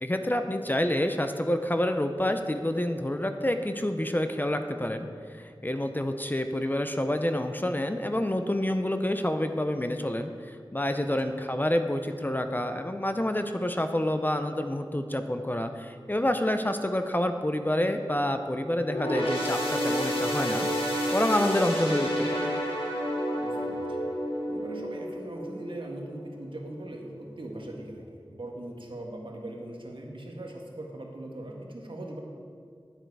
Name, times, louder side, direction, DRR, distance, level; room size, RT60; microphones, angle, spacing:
voice 1, 0.0-20.7 21.1-22.5, left 1 dB, 20° left, 7 dB, 0.6 m, -28 dB
sound 1, 18.8-26.5 26.9-27.1 28.0-28.1, equal, 85° left, 1.8 m, -30 dB
voice 2, 23.4-24.0 24.5-32.2, right 1 dB, 65° right, 0 dB, 1.5 m, -40 dB
11.5 x 7.8 x 4.7 m, 2.2 s
wide cardioid pair, 60°, 9 cm